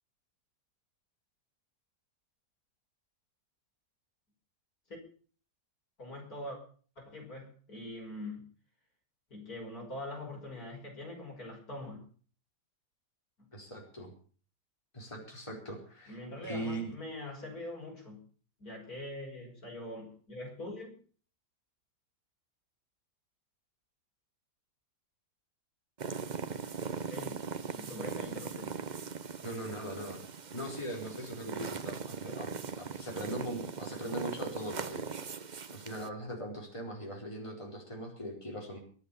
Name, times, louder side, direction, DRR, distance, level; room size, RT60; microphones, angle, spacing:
voice 1, 6.0-6.6 7.0-8.4 9.3-12.0 16.1-18.2 18.6-20.9 27.1-27.4 27.8-28.7, left 1 dB, 60° left, 0 dB, 6.0 m, -43 dB
voice 2, 13.5-14.1 14.9-16.2 16.4-16.9 29.4-30.2 30.5-35.3 35.7-38.8, right 1 dB, 15° left, -1 dB, 4.5 m, -40 dB
sound 1, 26.0-36.1, right 5 dB, 40° right, 0.7 m, -40 dB
23.5 x 8.1 x 6.9 m, 0.43 s
omnidirectional pair, 1.8 m